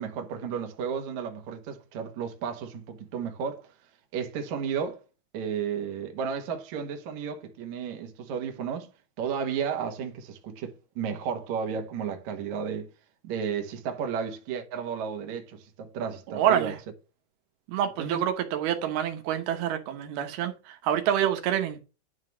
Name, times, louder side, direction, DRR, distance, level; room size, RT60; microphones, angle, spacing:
voice 1, 0.0-3.7 4.1-5.0 5.3-8.9 9.2-12.9 13.2-16.7 18.0-18.2, right 7 dB, 55° right, 2.4 m, -33 dB
voice 2, 16.3-16.8 17.7-21.8, right 10 dB, 80° right, 3.0 m, -27 dB
11.0 x 4.0 x 6.2 m
omnidirectional pair, 4.5 m